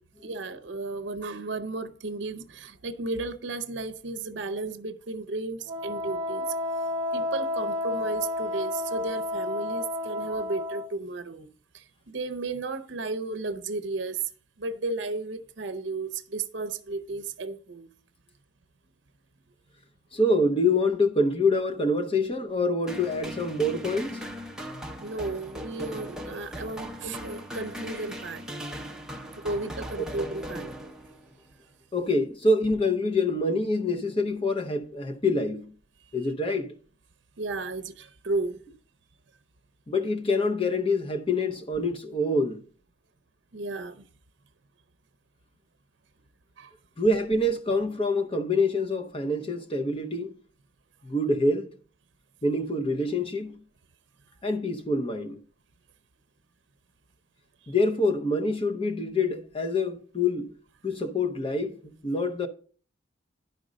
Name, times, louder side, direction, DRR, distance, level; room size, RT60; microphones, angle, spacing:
voice 1, 0.2-6.5 7.1-11.5 11.7-14.2 14.6-17.9 25.0-28.4 29.4-30.7 37.4-38.6 43.5-44.0 46.6-46.7, right 3 dB, 65° right, 0.7 m, -34 dB
Wind instrument woodwind instrument, 5.7-10.9, left 1 dB, 30° right, 1.0 m, -31 dB
voice 2, 20.1-24.2 31.9-35.7 36.1-36.8 39.9-42.6 47.0-50.4 51.0-51.7 52.4-53.6 54.4-55.4 57.7-60.6 60.8-62.5, left 2 dB, 30° left, 0.7 m, -26 dB
sound 1, 22.9-31.4, equal, 5° right, 0.8 m, -39 dB
10.5 x 5.2 x 5.0 m
head